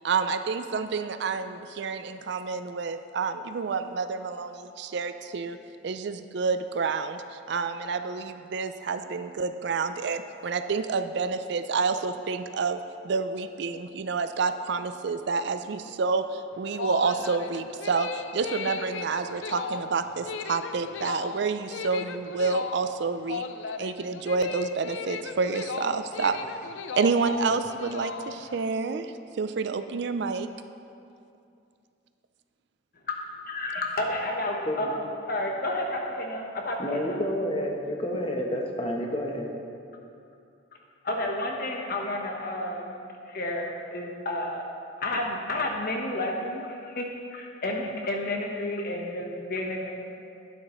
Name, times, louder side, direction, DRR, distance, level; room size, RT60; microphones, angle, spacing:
voice 1, 0.0-5.6 5.8-12.8 13.0-23.4 23.8-26.4 26.9-30.5, right 4 dB, 60° right, 10 dB, 0.4 m, -29 dB
sound 1, 16.5-28.7, left 5 dB, 75° left, 0.4 m, -36 dB
voice 2, 33.5-37.2 41.0-43.0 43.3-44.6 45.0-47.0 47.3-50.0, left 1 dB, 50° left, 1 dB, 1.1 m, -31 dB
voice 3, 36.8-39.5, equal, 30° left, 1 dB, 0.9 m, -29 dB
11.5 x 9.0 x 3.1 m, 2.5 s
head